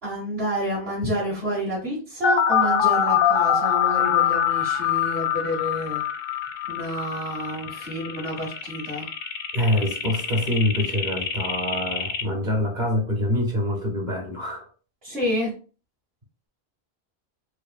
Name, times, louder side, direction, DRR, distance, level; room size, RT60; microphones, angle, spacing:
voice 1, 0.0-6.0 6.7-9.1 15.0-15.5, equal, 65° right, -9 dB, 2.1 m, -29 dB
sound 1, 2.2-12.2, left 8 dB, 65° left, 0.7 m, -24 dB
voice 2, 9.5-14.7, left 1 dB, 45° right, 1 dB, 1.0 m, -25 dB
4.7 x 2.5 x 2.4 m, 0.37 s
omnidirectional pair, 1.1 m